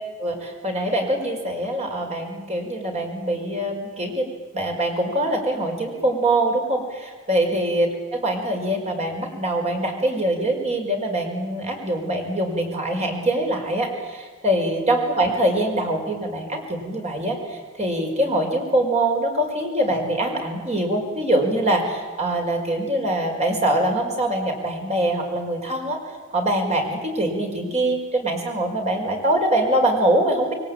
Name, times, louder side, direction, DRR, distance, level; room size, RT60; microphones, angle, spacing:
voice 1, 0.2-4.3 4.5-26.0 26.3-30.5, right 1 dB, 30° right, 2 dB, 5.3 m, -23 dB
27.5 x 21.5 x 9.0 m, 1.4 s
head